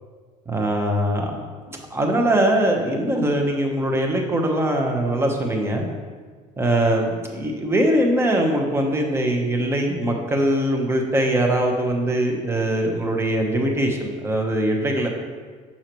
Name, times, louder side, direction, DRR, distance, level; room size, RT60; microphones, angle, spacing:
voice 1, 0.5-1.4 1.7-5.9 6.6-15.2, right 1 dB, 15° right, 1 dB, 1.0 m, -22 dB
6.5 x 5.6 x 3.1 m, 1.5 s
supercardioid pair, 105°, 17 cm